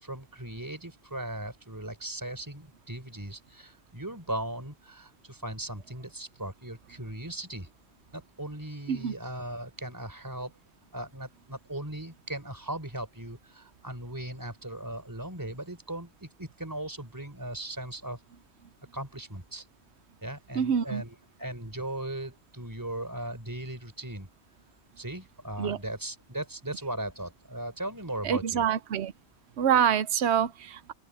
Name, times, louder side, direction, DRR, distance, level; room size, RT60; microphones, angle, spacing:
voice 1, 0.0-7.7 8.1-10.5 10.9-18.2 18.9-19.7 20.2-24.3 25.0-28.6, right 1 dB, 20° right, 3.8 m, -38 dB
voice 2, 20.5-21.0 25.6-25.8 28.2-29.1 29.6-30.9, right 8 dB, 85° right, 1.0 m, -26 dB
open air
omnidirectional pair, 1.1 m